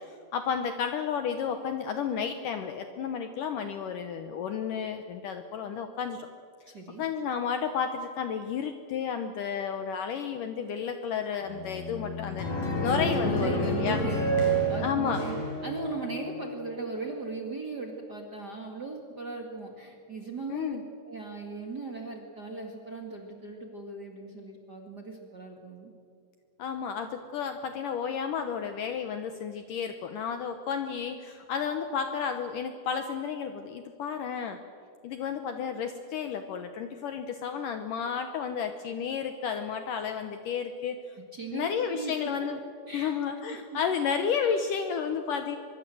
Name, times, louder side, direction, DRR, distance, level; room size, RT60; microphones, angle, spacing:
voice 1, 0.0-6.3 7.0-12.5 12.8-14.0 14.8-15.2 20.5-20.8 26.6-34.6 35.0-41.1 41.5-42.6 42.9-45.6, left 7 dB, 70° left, 7 dB, 2.1 m, -32 dB
voice 2, 6.7-7.0 12.7-15.4 15.6-20.8 21.0-25.9 41.3-42.1 42.9-43.1 43.5-43.8, right 4 dB, 35° right, 1 dB, 1.9 m, -38 dB
sound 1, 11.4-15.8, left 7 dB, 30° left, 3.2 m, -39 dB
sound 2, 12.4-16.5, right 2 dB, 55° left, 6.2 m, -29 dB
24.0 x 23.0 x 7.8 m, 2.2 s
omnidirectional pair, 4.8 m